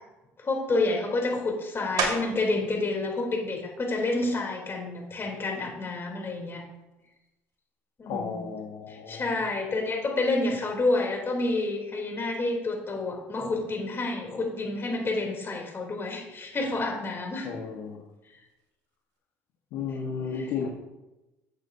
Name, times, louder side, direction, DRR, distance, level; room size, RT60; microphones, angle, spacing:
voice 1, 0.4-6.6 8.0-8.4 8.9-17.5, left 2 dB, 35° left, 0 dB, 3.4 m, -29 dB
sound 1, 2.0-2.6 3.1-7.6 8.1-13.2 13.5-19.2, right 4 dB, 60° right, 2.5 m, -40 dB
voice 2, 8.1-9.4 17.4-18.0 19.7-20.7, left 6 dB, 65° left, 0 dB, 1.4 m, -34 dB
12.0 x 8.2 x 2.8 m, 1.0 s
hypercardioid pair, 70°, 7 cm